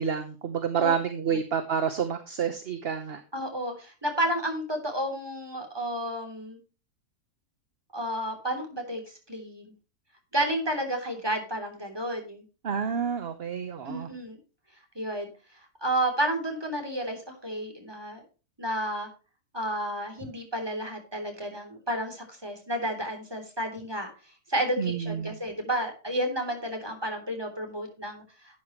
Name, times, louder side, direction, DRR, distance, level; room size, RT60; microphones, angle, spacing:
voice 1, 0.0-3.2 12.6-14.1 24.8-25.4, right 7 dB, 45° right, 8 dB, 1.0 m, -29 dB
voice 2, 3.3-6.6 7.9-9.0 9.3-9.7 10.3-12.4 13.8-14.4 14.9-15.3 15.8-18.2 18.6-19.1 19.5-24.1 24.5-28.2, right 1 dB, 15° right, 3 dB, 3.3 m, -31 dB
12.0 x 9.3 x 3.1 m, 0.33 s
omnidirectional pair, 1.8 m